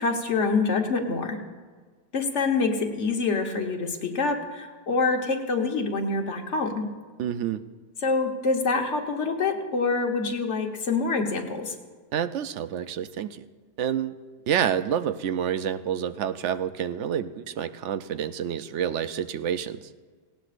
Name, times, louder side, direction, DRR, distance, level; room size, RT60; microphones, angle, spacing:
voice 1, 0.0-1.4 2.1-6.9 8.0-11.7, left 4 dB, 85° left, 3 dB, 1.6 m, -26 dB
voice 2, 7.2-7.6 12.1-13.4 13.8-14.1 14.5-19.8, right 9 dB, 85° right, 12 dB, 0.9 m, -28 dB
18.5 x 17.0 x 2.5 m, 1.5 s
omnidirectional pair, 1.2 m